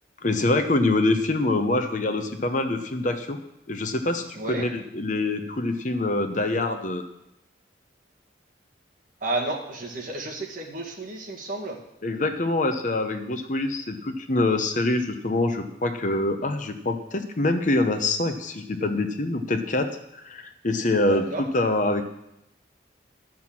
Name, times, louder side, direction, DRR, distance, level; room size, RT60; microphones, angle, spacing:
voice 1, 0.2-3.4 3.7-7.0 12.0-21.2 21.5-22.0, left 2 dB, 40° left, 7 dB, 0.9 m, -25 dB
voice 2, 4.3-4.7 9.2-11.8 21.0-21.5, right 2 dB, 45° right, 0 dB, 1.9 m, -31 dB
11.5 x 6.1 x 7.4 m, 0.83 s
head